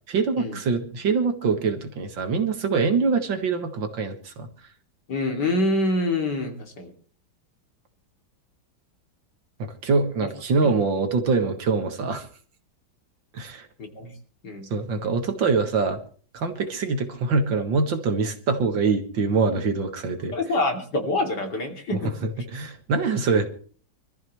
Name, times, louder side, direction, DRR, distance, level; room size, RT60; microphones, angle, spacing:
voice 1, 0.1-4.5 9.6-12.3 13.3-13.7 14.7-16.0 16.3-20.3 22.2-23.5, right 4 dB, 65° right, 7 dB, 2.3 m, -24 dB
voice 2, 5.1-6.9 10.2-10.3 10.6-10.7 13.8-14.1 14.4-14.7 20.3-22.1, left 2 dB, 55° left, 2 dB, 3.4 m, -26 dB
25.5 x 14.0 x 3.2 m, 0.43 s
omnidirectional pair, 2.2 m